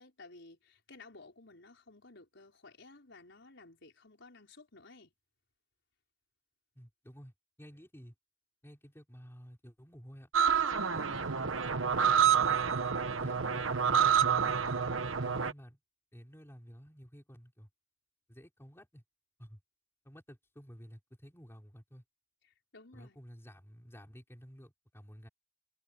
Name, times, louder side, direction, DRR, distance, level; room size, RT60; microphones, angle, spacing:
voice 1, 0.0-5.1 22.4-23.2, left 3 dB, 60° left, 5.8 m, -55 dB
voice 2, 6.8-7.3 7.6-8.1 8.6-10.3 10.9-11.5 12.0-12.7 13.2-14.6 15.2-15.8 16.1-17.7 18.3-19.0 19.4-19.6 20.0-22.0 22.9-25.3, equal, 10° left, 5.9 m, -52 dB
sound 1, 10.3-15.5, right 7 dB, 90° right, 1.3 m, -28 dB
head